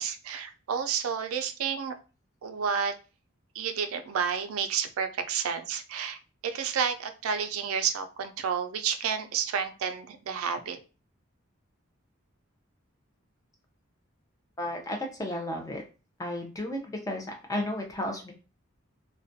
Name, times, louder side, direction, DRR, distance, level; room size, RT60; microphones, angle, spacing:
voice 1, 0.0-2.0 2.4-3.0 3.5-10.8, right 7 dB, 85° right, 8 dB, 0.4 m, -30 dB
voice 2, 14.6-15.8 16.2-18.3, left 1 dB, 15° left, 2 dB, 0.4 m, -33 dB
2.3 x 2.1 x 2.5 m, 0.32 s
head